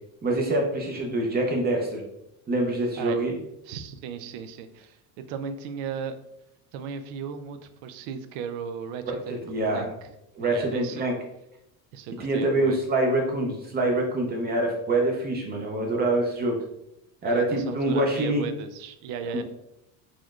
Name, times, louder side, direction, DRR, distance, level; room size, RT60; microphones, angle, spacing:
voice 1, 0.2-2.0 2.5-3.4 9.5-9.8 10.3-11.1 12.2-16.6 17.2-18.4 19.3-19.4, right 2 dB, 25° right, 1 dB, 0.6 m, -25 dB
voice 2, 3.6-6.2 6.7-11.0 11.9-12.8 17.2-19.4, right 6 dB, 80° right, 10 dB, 0.5 m, -36 dB
4.2 x 3.0 x 2.4 m, 0.83 s
cardioid pair, 145°, 38 cm